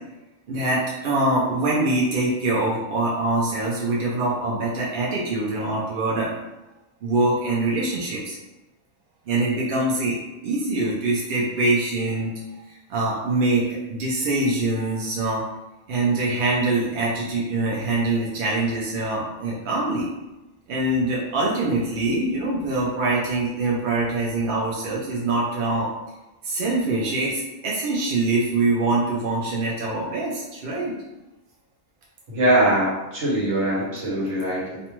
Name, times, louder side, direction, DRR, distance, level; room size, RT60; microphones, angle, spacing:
voice 1, 0.5-6.3 7.0-8.4 9.3-10.2 10.4-12.3 12.9-15.4 15.9-20.1 20.7-25.9 26.4-30.9, right 2 dB, 60° right, -5 dB, 0.6 m, -24 dB
voice 2, 32.3-34.8, right 1 dB, 85° right, -7 dB, 1.2 m, -22 dB
2.5 x 2.1 x 2.9 m, 1.0 s
omnidirectional pair, 1.2 m